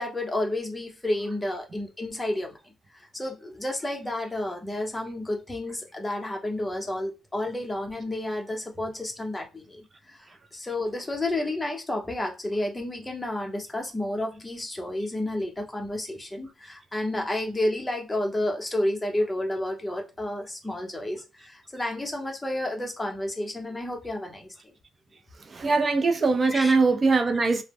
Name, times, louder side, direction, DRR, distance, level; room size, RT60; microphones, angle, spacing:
voice 1, 0.0-2.6 3.0-24.5 26.5-26.7, left 1 dB, 15° left, 0.7 m, -31 dB
voice 2, 25.4-27.6, right 3 dB, 35° right, 0.4 m, -22 dB
2.0 x 2.0 x 3.4 m
cardioid pair, 90°, 0 cm